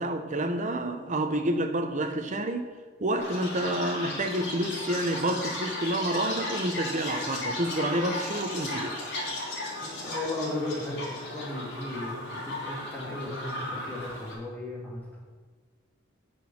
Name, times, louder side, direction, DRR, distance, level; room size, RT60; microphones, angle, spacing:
voice 1, 0.0-2.7 3.0-9.0, right 1 dB, 40° right, 6 dB, 1.0 m, -29 dB
Chirp tweet, 3.2-14.3, left 1 dB, 60° left, 3.2 m, -35 dB
voice 2, 9.8-15.2, left 2 dB, 10° left, -6 dB, 2.9 m, -36 dB
9.0 x 6.2 x 6.5 m, 1.4 s
head